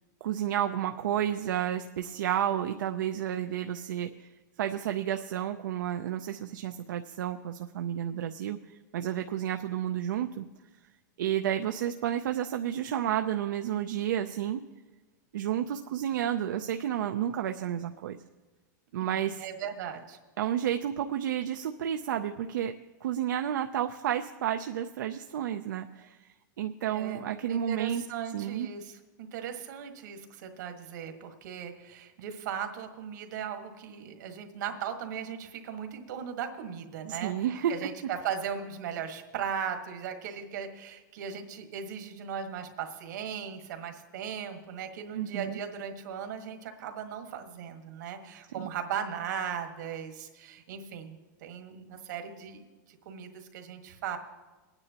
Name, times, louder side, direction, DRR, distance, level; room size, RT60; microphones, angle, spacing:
voice 1, 0.2-4.3 4.6-8.6 8.9-10.5 11.2-14.6 15.3-18.2 18.9-19.4 20.4-22.7 23.0-26.2 26.6-28.0 28.3-28.7 37.1-37.9 45.1-45.6 48.6-48.7, right 10 dB, 90° right, 6 dB, 0.5 m, -31 dB
voice 2, 19.0-20.2 26.9-54.2, right 8 dB, 70° right, 5 dB, 1.5 m, -38 dB
21.5 x 9.7 x 2.9 m, 1.2 s
supercardioid pair, 150°, 10 cm